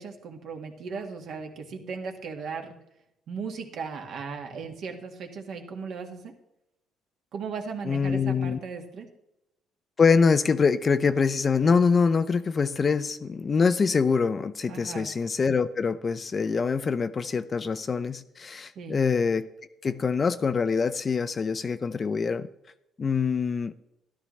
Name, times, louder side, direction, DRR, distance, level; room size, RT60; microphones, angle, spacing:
voice 1, 0.0-2.8 3.3-6.3 7.3-9.1 14.7-15.1 18.7-19.0, right 5 dB, 55° right, 4 dB, 1.6 m, -37 dB
voice 2, 7.9-8.6 10.0-19.5 19.8-22.5 23.0-23.7, left 5 dB, 25° left, 12 dB, 0.4 m, -24 dB
13.0 x 12.5 x 3.2 m, 0.85 s
cardioid pair, 145°, 0 cm